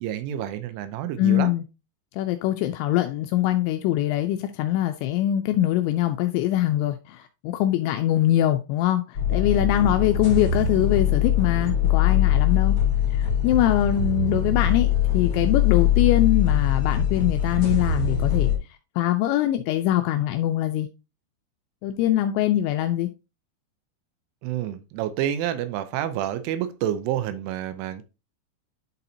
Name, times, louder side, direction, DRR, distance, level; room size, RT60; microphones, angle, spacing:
voice 1, 0.0-1.5 24.4-28.0, right 11 dB, 80° right, 3.1 m, -28 dB
voice 2, 1.2-1.7 2.2-12.8 13.1-14.9 15.1-18.5 19.0-20.9 21.8-23.1, left 13 dB, 85° left, 2.6 m, -23 dB
sound 1, 9.1-18.5, left 8 dB, 45° left, 2.5 m, -22 dB
10.5 x 4.1 x 2.7 m
omnidirectional pair, 5.7 m